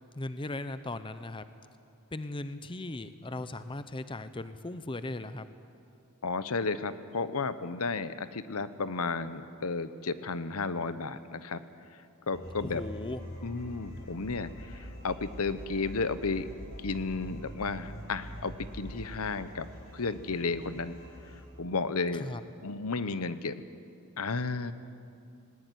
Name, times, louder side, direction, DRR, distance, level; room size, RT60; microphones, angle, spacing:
voice 1, 0.1-1.4 2.1-5.5 12.6-13.2 22.1-22.4, left 2 dB, 20° left, 12 dB, 0.6 m, -38 dB
voice 2, 6.2-11.6 12.3-12.8 13.4-16.5 16.8-19.7 19.9-21.0 21.6-22.3 22.6-23.6 24.2-24.7, left 4 dB, 75° left, 13 dB, 0.9 m, -33 dB
sound 1, 12.3-21.4, equal, 40° left, 6.1 m, -44 dB
19.5 x 19.0 x 9.3 m, 2.5 s
head